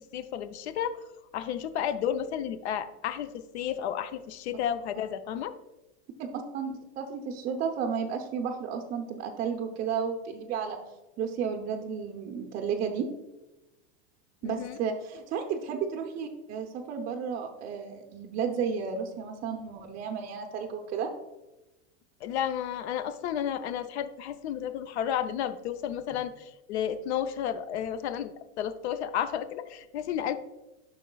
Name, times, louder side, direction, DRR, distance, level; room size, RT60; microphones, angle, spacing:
voice 1, 0.1-1.0 1.3-5.5 14.4-14.8 22.2-30.4, left 9 dB, 75° left, 11 dB, 0.6 m, -32 dB
voice 2, 6.3-10.8 11.2-13.1 14.4-21.1, right 6 dB, 25° right, 2 dB, 0.5 m, -33 dB
10.0 x 6.0 x 2.3 m, 1.0 s
supercardioid pair, 150°, 33 cm